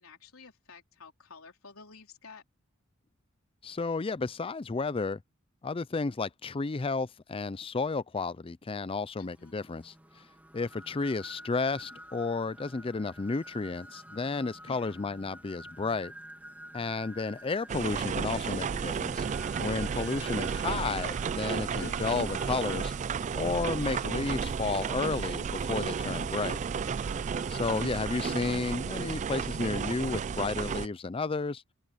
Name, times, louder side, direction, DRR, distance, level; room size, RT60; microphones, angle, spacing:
voice 1, 0.0-2.4 9.2-9.6 14.7-15.0 27.9-28.7, left 4 dB, 85° left, 3.8 m, -52 dB
voice 2, 3.6-5.2 5.6-9.9 10.5-16.1 16.7-19.3 19.6-22.9 23.3-26.6 27.5-31.6, left 4 dB, 25° left, 0.5 m, -32 dB
sound 1, 9.2-28.4, equal, 10° right, 2.1 m, -50 dB
sound 2, 17.7-30.9, right 6 dB, 35° right, 0.3 m, -33 dB
sound 3, 21.8-27.6 28.2-28.6, left 2 dB, 60° left, 6.3 m, -55 dB
head